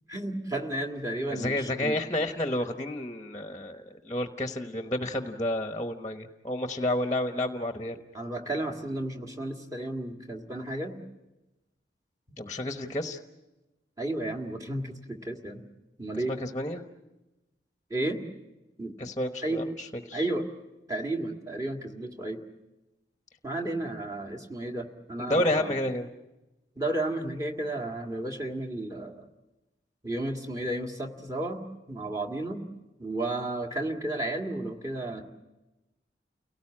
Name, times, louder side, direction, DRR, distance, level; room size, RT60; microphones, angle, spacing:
voice 1, 0.1-2.0 8.1-11.0 12.3-12.4 14.0-15.6 16.0-16.4 17.9-18.2 18.8-19.0 19.4-19.7 20.1-20.5 20.9-22.4 23.4-25.8 26.8-29.2 30.0-31.6 31.9-32.6 33.0-35.2, right 1 dB, 20° right, 2 dB, 1.9 m, -33 dB
voice 2, 1.3-8.0 12.4-13.2 16.1-16.8 19.0-20.3 25.3-26.1, left 1 dB, 20° left, 7 dB, 1.0 m, -30 dB
29.5 x 18.0 x 8.7 m, 1.0 s
head